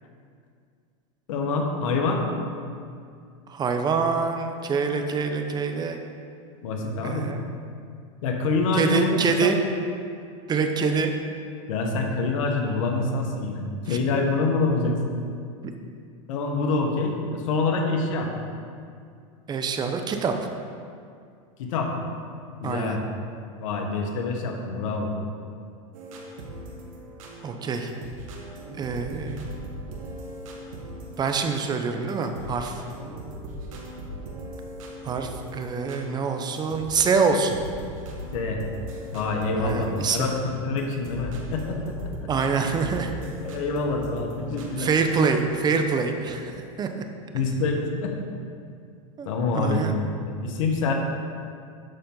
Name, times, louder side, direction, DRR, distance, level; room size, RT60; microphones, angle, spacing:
voice 1, 1.3-2.2 6.6-7.3 8.2-9.5 11.7-15.1 16.3-18.3 21.6-21.9 22.6-23.0 23.6-25.1 38.3-38.6 39.1-42.3 43.4-44.9 47.3-48.1 49.2-49.9 50.2-50.9, left 3 dB, 75° left, 2 dB, 1.3 m, -26 dB
voice 2, 3.5-6.0 7.0-7.5 8.7-9.6 10.5-11.1 13.9-14.0 19.5-20.3 22.6-23.0 27.4-27.9 28.8-29.5 31.2-32.8 35.0-37.6 39.6-40.3 42.3-43.1 44.8-46.5 46.8-46.9 49.2-49.3 49.5-49.9, right 5 dB, 25° right, 6 dB, 0.7 m, -25 dB
sound 1, 25.9-45.4, right 1 dB, 80° right, 1.4 m, -39 dB
12.0 x 4.3 x 3.9 m, 2.3 s
supercardioid pair, 120°, 17 cm